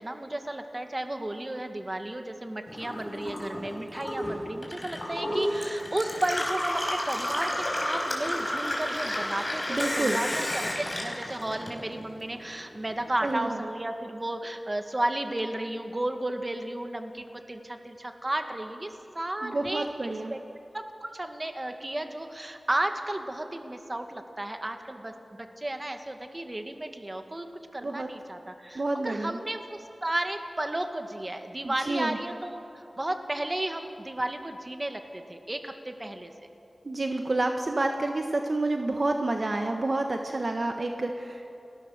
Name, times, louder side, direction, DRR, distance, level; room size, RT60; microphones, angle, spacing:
voice 1, 0.0-10.7 11.0-19.9 20.3-20.4 20.7-25.1 25.6-36.3, right 1 dB, 30° right, 6 dB, 2.0 m, -33 dB
Gurgling / Water tap faucet / Sink (filling or washing), 2.7-12.2 12.5-13.4, left 1 dB, 30° left, 4.7 m, -32 dB
voice 2, 9.7-10.2 13.2-13.6 19.4-20.3 27.8-28.1 28.7-29.4 31.6-32.2 36.8-41.5, right 2 dB, 55° right, 4 dB, 1.3 m, -29 dB
29.5 x 20.0 x 6.6 m, 2.8 s
wide cardioid pair, 75°, 0 cm